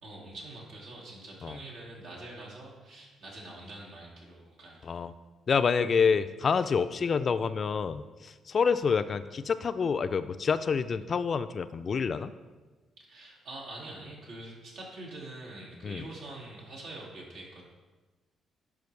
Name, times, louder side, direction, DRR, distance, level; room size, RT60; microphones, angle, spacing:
voice 1, 0.0-5.0 13.0-17.6, right 2 dB, 85° right, -3 dB, 2.2 m, -45 dB
voice 2, 5.5-12.3 15.8-16.1, left 5 dB, 45° left, 12 dB, 0.3 m, -28 dB
11.0 x 4.8 x 3.3 m, 1.3 s
cardioid pair, 90°, 0 cm